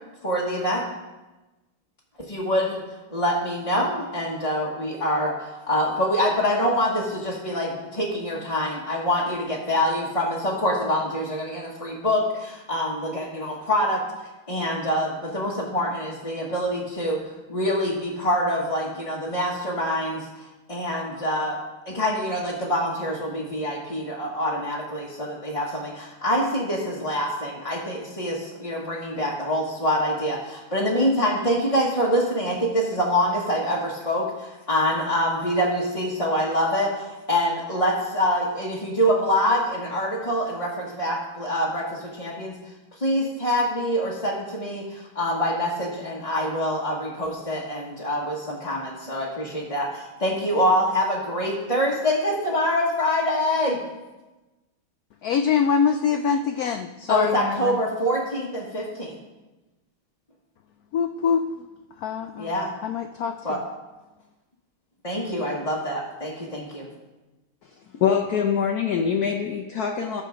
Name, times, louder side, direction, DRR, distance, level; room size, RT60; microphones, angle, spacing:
voice 1, 0.2-0.8 2.2-2.8 3.1-5.3 5.7-14.0 14.5-17.2 17.5-20.3 20.7-21.6 21.9-42.5 43.0-53.8 57.1-59.2 62.4-62.7 63.4-63.6 65.0-66.9, equal, 20° left, -5 dB, 1.1 m, -25 dB
voice 2, 55.2-57.8 60.9-61.7 62.0-62.5 62.8-63.6, left 6 dB, 90° left, 7 dB, 0.8 m, -24 dB
voice 3, 67.9-70.2, left 7 dB, 60° left, 3 dB, 1.1 m, -24 dB
12.0 x 6.8 x 5.1 m, 1.1 s
omnidirectional pair, 2.2 m